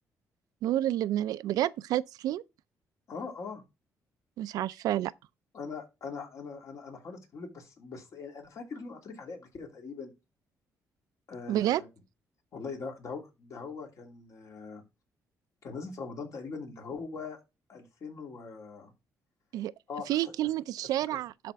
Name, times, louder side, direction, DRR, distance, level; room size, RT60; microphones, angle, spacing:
voice 1, 0.6-2.4 4.4-5.1 11.5-11.8 19.5-19.7 20.1-21.5, right 13 dB, 85° right, 0.4 m, -29 dB
voice 2, 3.1-3.6 5.5-10.1 11.3-11.9 12.5-14.8 15.6-17.4 17.7-18.9 19.9-20.1, left 4 dB, 60° left, 2.8 m, -41 dB
12.0 x 4.3 x 3.5 m
cardioid pair, 100°, 6 cm